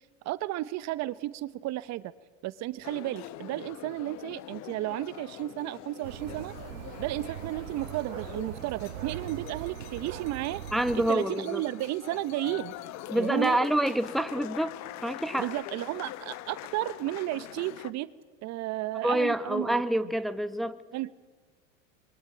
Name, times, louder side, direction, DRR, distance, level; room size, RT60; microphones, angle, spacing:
voice 1, 0.2-2.1 2.4-6.5 7.0-10.6 10.9-12.7 13.1-13.6 15.4-18.1 18.4-19.8 20.9-21.1, right 16 dB, 45° right, 16 dB, 1.0 m, -33 dB
sound 1, 2.8-17.9, left 14 dB, 45° left, 1.1 m, -43 dB
sound 2, 6.0-11.1, right 13 dB, 85° right, 1.0 m, -41 dB
voice 2, 10.7-11.6 13.1-15.5 19.0-20.8, right 1 dB, ahead, 10 dB, 1.1 m, -27 dB
24.5 x 23.0 x 9.1 m, 1.3 s
hypercardioid pair, 110°, 39 cm